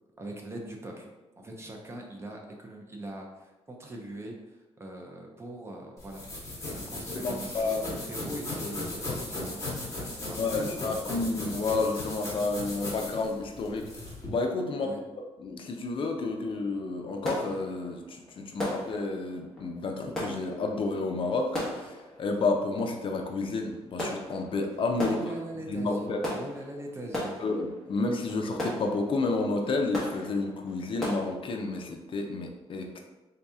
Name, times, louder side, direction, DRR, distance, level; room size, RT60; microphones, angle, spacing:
voice 1, 0.2-1.1 1.4-6.2 6.7-11.2 14.8-15.0 25.0-27.4, right 1 dB, 25° right, 0 dB, 0.7 m, -41 dB
sound 1, 6.0-14.3, left 2 dB, 25° left, 1.3 m, -37 dB
voice 2, 7.2-7.9 10.4-13.8 14.3-14.9 15.4-21.9 22.2-25.2 25.7-26.2 27.4-33.0, left 3 dB, 50° left, 3 dB, 0.5 m, -30 dB
sound 2, 17.3-31.3, left 1 dB, 5° left, 1.2 m, -38 dB
3.9 x 2.8 x 3.5 m, 1.1 s
cardioid pair, 135°, 11 cm